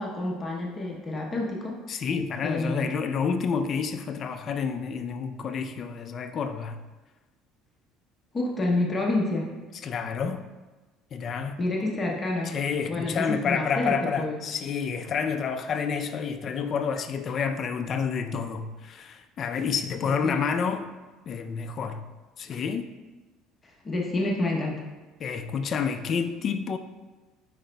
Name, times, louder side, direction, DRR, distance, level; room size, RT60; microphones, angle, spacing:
voice 1, 0.0-1.8 2.4-2.9 8.3-9.5 11.6-12.6 12.9-14.4 20.0-20.4 23.6-24.8, left 2 dB, 20° left, 0.8 m, -28 dB
voice 2, 1.9-6.8 9.8-10.5 11.1-11.6 11.8-12.0 12.5-20.9 21.3-22.0 22.4-22.9 25.2-26.8, left 6 dB, 40° left, 0.4 m, -29 dB
9.0 x 5.0 x 2.2 m
cardioid pair, 135°, 0 cm